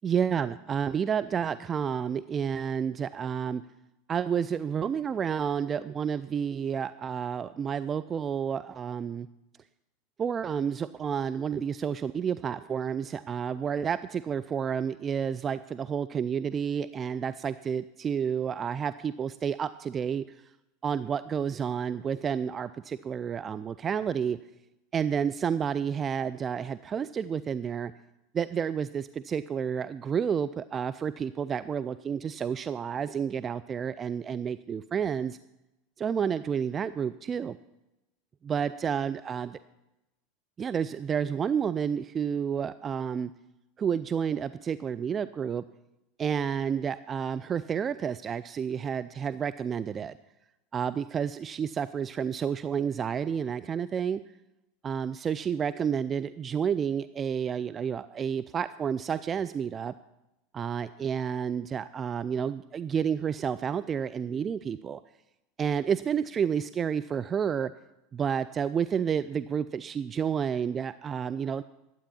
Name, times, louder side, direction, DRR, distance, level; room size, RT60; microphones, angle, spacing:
voice 1, 0.0-3.6 4.1-9.3 10.2-20.5 20.8-24.4 24.9-27.9 28.3-35.4 36.0-37.6 38.4-39.6 40.6-43.3 43.8-45.6 46.2-50.1 50.7-54.2 54.8-59.9 60.5-65.0 65.6-67.7 68.1-71.6, right 7 dB, 30° right, 12 dB, 0.4 m, -30 dB
12.0 x 8.5 x 7.2 m, 0.93 s
figure-of-eight pair, 80°, 0 cm